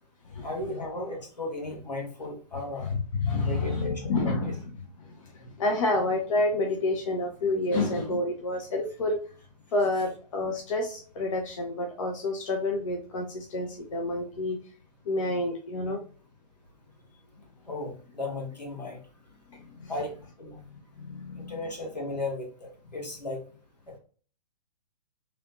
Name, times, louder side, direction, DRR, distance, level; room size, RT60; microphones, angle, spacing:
voice 1, 0.4-2.9 3.4-4.5 17.6-19.0 19.9-20.6 21.4-23.4 23.9-24.0, left 2 dB, 80° left, -1 dB, 1.4 m, -35 dB
voice 2, 3.2-4.5 5.4-9.2 9.7-14.6 15.1-16.0 19.5-19.9 20.6-21.6, left 2 dB, 50° left, 2 dB, 0.6 m, -29 dB
3.1 x 2.9 x 2.5 m, 0.41 s
figure-of-eight pair, 120°, 21 cm